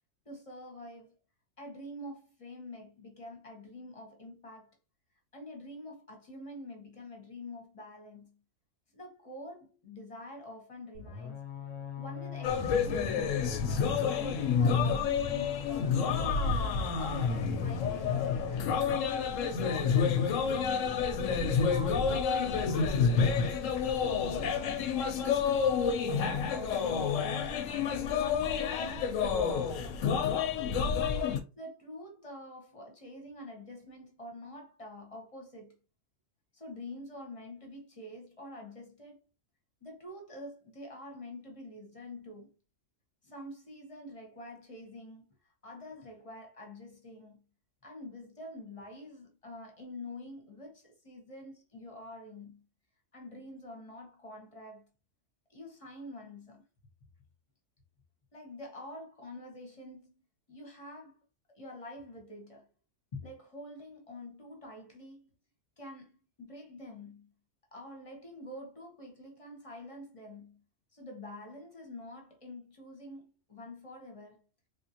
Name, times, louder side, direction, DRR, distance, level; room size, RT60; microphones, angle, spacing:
voice 1, 0.2-1.1 1.6-4.8 5.3-8.4 8.9-11.4 11.9-13.6 14.1-16.5 16.8-18.9 19.4-21.0 21.3-23.4 23.9-30.7 31.6-35.8 36.5-39.2 39.8-42.5 43.2-45.3 45.6-47.4 47.8-52.6 53.1-54.9 55.5-56.6 58.3-60.2 60.5-61.2 61.5-62.7 63.1-65.3 65.8-67.3 67.7-70.6 70.9-74.4, left 1 dB, 30° left, 0.9 m, -47 dB
sound 1, 10.9-15.8, left 6 dB, 65° left, 0.8 m, -41 dB
sound 2, 12.4-31.4, left 6 dB, 90° left, 1.0 m, -29 dB
3.3 x 2.5 x 2.8 m
omnidirectional pair, 1.3 m